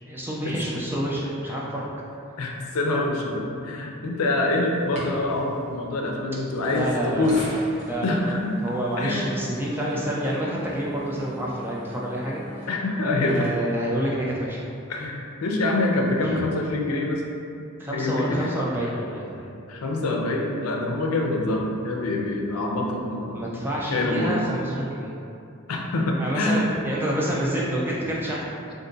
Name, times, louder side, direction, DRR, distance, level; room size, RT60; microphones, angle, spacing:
voice 1, 0.1-1.9 6.6-7.5 7.8-8.3 8.6-12.4 13.2-14.7 16.2-16.4 17.8-19.4 23.3-25.1 26.2-28.6, right 1 dB, 10° right, -5 dB, 0.3 m, -28 dB
voice 2, 2.4-7.3 8.0-8.5 9.0-9.2 12.7-13.4 14.9-17.2 17.9-18.5 19.7-23.4 23.9-24.3 25.7-26.7, left 2 dB, 90° left, 0 dB, 0.5 m, -25 dB
sound 1, 4.7-15.1, equal, 35° right, 0.8 m, -42 dB
2.6 x 2.5 x 3.8 m, 2.6 s
head